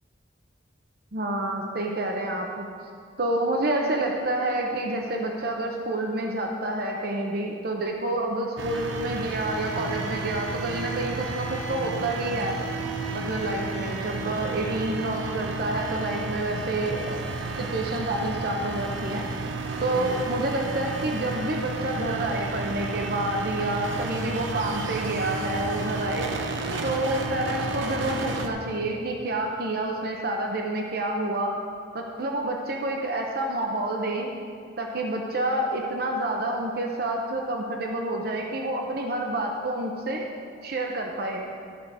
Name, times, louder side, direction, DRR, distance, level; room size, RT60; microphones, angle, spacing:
voice 1, 1.1-2.7 3.2-12.6 13.1-17.2 17.5-19.3 19.8-26.3 26.8-31.6 31.9-34.3 34.8-40.3 40.6-41.4, right 1 dB, 55° right, 1 dB, 0.8 m, -28 dB
sound 1, 8.6-28.5, right 3 dB, 85° right, 0.8 m, -32 dB
13.0 x 5.0 x 6.2 m, 2.3 s
head